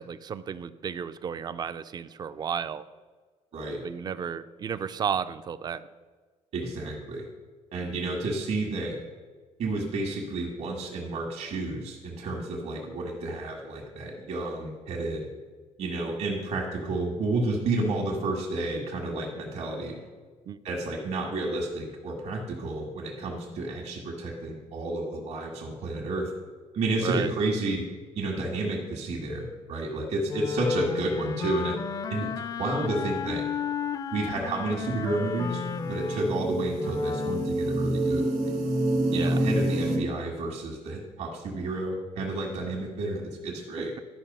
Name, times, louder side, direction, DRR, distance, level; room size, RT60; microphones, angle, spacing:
voice 1, 0.0-2.8 3.8-5.8 20.5-20.6 27.0-27.3 39.1-39.4 43.8-44.0, right 7 dB, 35° right, 13 dB, 0.4 m, -33 dB
voice 2, 6.5-7.3 7.7-9.0 9.6-15.3 15.8-20.0 20.6-26.3 26.7-27.8 28.2-31.8 32.1-32.3 32.6-33.4 34.1-35.6 35.9-38.5 39.1-43.9, right 2 dB, 70° right, -1 dB, 1.7 m, -31 dB
Wind instrument woodwind instrument, 30.3-37.6, left 7 dB, 30° left, 0.4 m, -33 dB
sound 1, 34.9-40.0, right 1 dB, 85° right, 1.8 m, -28 dB
12.0 x 5.3 x 5.4 m, 1.5 s
cardioid pair, 140°, 12 cm